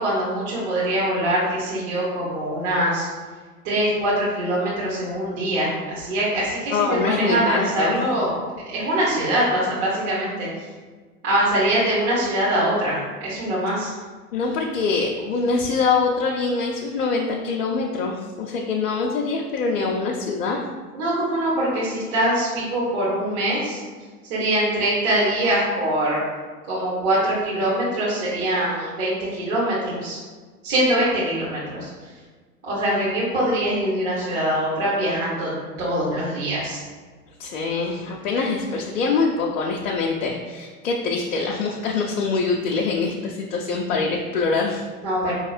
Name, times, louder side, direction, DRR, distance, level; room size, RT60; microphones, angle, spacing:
voice 1, 0.0-3.1 3.6-8.4 8.7-10.5 11.2-13.9 20.9-23.8 24.3-26.2 26.7-30.2 30.6-31.9 32.6-35.5 35.8-36.8 45.0-45.3, right 1 dB, 40° right, -8 dB, 1.2 m, -23 dB
voice 2, 6.7-8.0 14.3-20.6 37.4-44.8, left 4 dB, 60° left, 0 dB, 0.6 m, -24 dB
4.7 x 2.9 x 2.4 m, 1.4 s
figure-of-eight pair, 95°, 47 cm